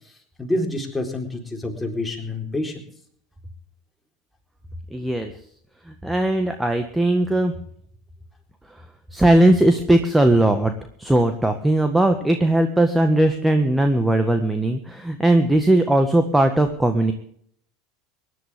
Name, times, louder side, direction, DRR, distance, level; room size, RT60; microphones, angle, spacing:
voice 1, 0.4-2.8, left 1 dB, 10° left, 1 dB, 4.3 m, -27 dB
voice 2, 4.9-5.3 6.0-7.5 9.1-10.7 11.0-17.1, right 1 dB, 5° right, 6 dB, 1.7 m, -18 dB
24.5 x 11.5 x 3.7 m, 0.65 s
figure-of-eight pair, 75°, 0 cm